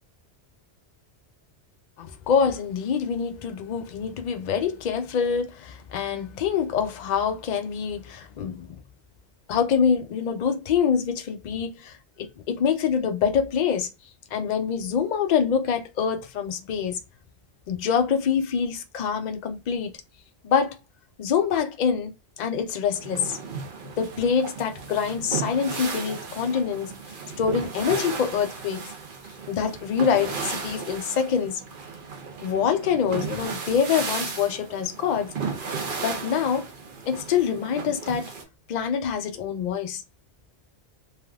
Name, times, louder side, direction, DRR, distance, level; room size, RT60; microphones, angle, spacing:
voice 1, 2.0-8.8 9.5-13.9 14.3-17.0 17.7-19.9 20.4-20.8 21.2-23.4 23.8-26.9 27.4-28.8 29.5-31.6 32.4-35.3 36.0-36.7 37.1-38.3 38.7-40.0, left 7 dB, 60° left, 0.5 m, -25 dB
sound 1, 22.9-38.4, right 5 dB, 50° right, 0.8 m, -35 dB
3.4 x 2.6 x 2.3 m
omnidirectional pair, 1.2 m